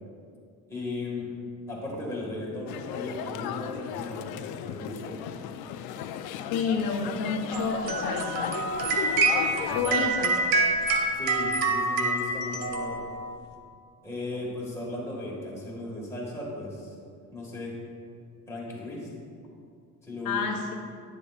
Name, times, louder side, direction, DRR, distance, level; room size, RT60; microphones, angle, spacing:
voice 1, 0.7-1.4 1.7-4.2 4.5-5.2 9.6-10.0 11.2-13.0 14.0-16.9 17.3-17.8 18.5-19.1 20.0-20.4, left 2 dB, 10° left, -5 dB, 1.8 m, -36 dB
sound 1, 2.7-9.8, left 10 dB, 85° left, 0.5 m, -35 dB
voice 2, 6.5-8.5 9.7-10.6 20.2-20.6, left 5 dB, 65° left, 1 dB, 0.9 m, -29 dB
sound 2, 7.5-13.4, right 3 dB, 70° right, 0.9 m, -27 dB
10.5 x 10.0 x 2.4 m, 2.3 s
cardioid pair, 175°, 36 cm